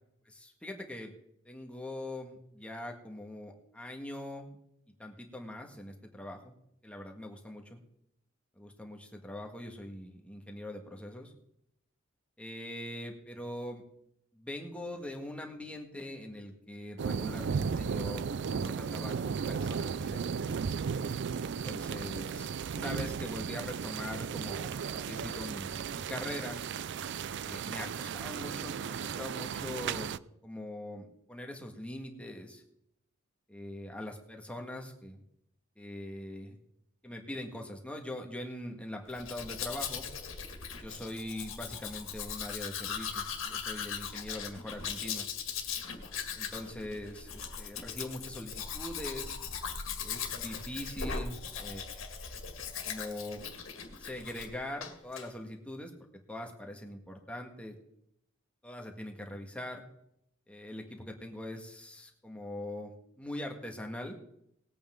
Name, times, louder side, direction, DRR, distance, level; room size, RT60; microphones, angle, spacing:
voice 1, 0.2-1.1 1.4-4.6 5.0-6.5 6.8-7.8 8.5-11.3 12.4-13.8 14.3-20.6 21.5-26.6 27.4-30.2 30.4-32.6 33.5-35.2 35.8-36.6 37.0-40.0 40.8-45.3 46.3-49.4 50.0-52.3 52.8-53.4 54.0-55.9 56.3-57.7 58.6-59.8 60.5-64.2, left 1 dB, 5° left, 2 dB, 1.7 m, -42 dB
sound 1, 17.0-30.2, right 6 dB, 60° right, 0.4 m, -35 dB
Domestic sounds home sounds, 39.1-54.5 54.8-55.3, left 6 dB, 70° left, 2.0 m, -39 dB
19.5 x 8.5 x 3.8 m, 0.76 s
head